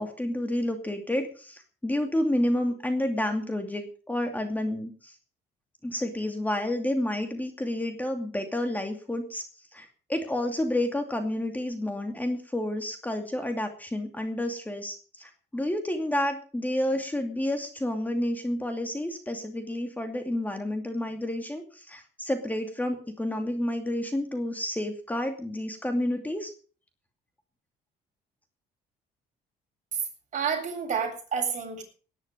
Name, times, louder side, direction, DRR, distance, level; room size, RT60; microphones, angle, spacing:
voice 1, 0.0-5.2 5.8-26.5, left 1 dB, 10° left, 5 dB, 2.5 m, -30 dB
voice 2, 30.3-31.8, right 6 dB, 45° right, 2 dB, 7.8 m, -29 dB
18.5 x 11.0 x 5.3 m, 0.40 s
cardioid pair, 110°, 17 cm